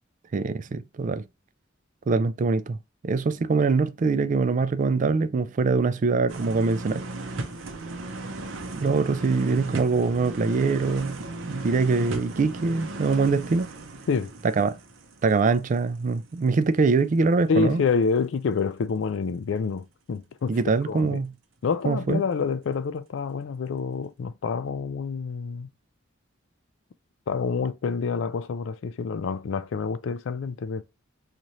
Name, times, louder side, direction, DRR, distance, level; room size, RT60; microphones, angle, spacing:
voice 1, 0.3-1.2 2.1-2.8 3.0-7.1 8.7-11.2 11.5-13.7 14.4-14.8 15.2-17.8 20.5-21.3 21.8-22.2, right 4 dB, 40° right, 0.4 m, -23 dB
sound 1, 6.3-16.1 16.5-16.6, right 2 dB, 85° right, 0.7 m, -36 dB
voice 2, 17.5-20.6 20.9-21.2 21.6-25.7 27.3-30.8, left 5 dB, 70° left, 0.4 m, -27 dB
3.1 x 2.5 x 4.1 m
head